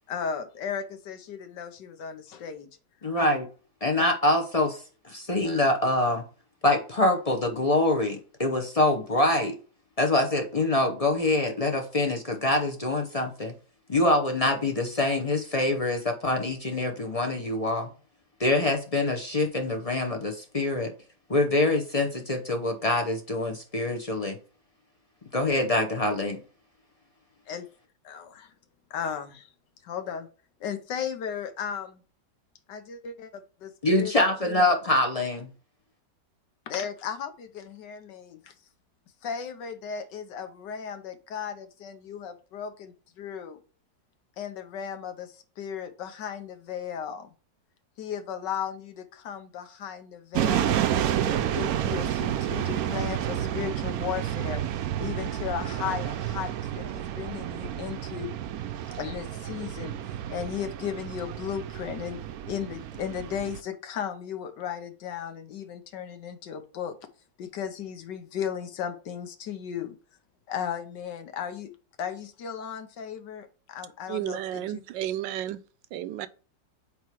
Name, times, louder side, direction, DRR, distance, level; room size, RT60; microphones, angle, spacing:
voice 1, 0.1-2.7 3.1-3.3 27.5-27.7 28.0-28.5 28.9-29.5 29.8-30.3 30.6-32.0 32.7-34.7 36.7-38.5 39.2-43.6 44.4-47.3 48.0-50.8 51.3-54.6 55.0-58.3 59.0-59.9 60.3-62.2 62.5-67.0 67.4-70.0 70.5-71.7 72.0-74.8, left 8 dB, 80° left, 1.5 m, -35 dB
voice 2, 3.0-3.5 3.8-4.8 5.0-6.2 6.6-9.6 10.0-13.5 13.9-17.9 18.4-20.9 21.3-24.4 25.3-26.4 33.8-35.5, left 2 dB, 35° left, 0.6 m, -25 dB
sound 1, 50.3-63.6, right 11 dB, 70° right, 0.9 m, -30 dB
voice 3, 74.1-75.6 75.9-76.3, right 12 dB, 85° right, 1.3 m, -32 dB
8.4 x 3.1 x 4.7 m
omnidirectional pair, 1.9 m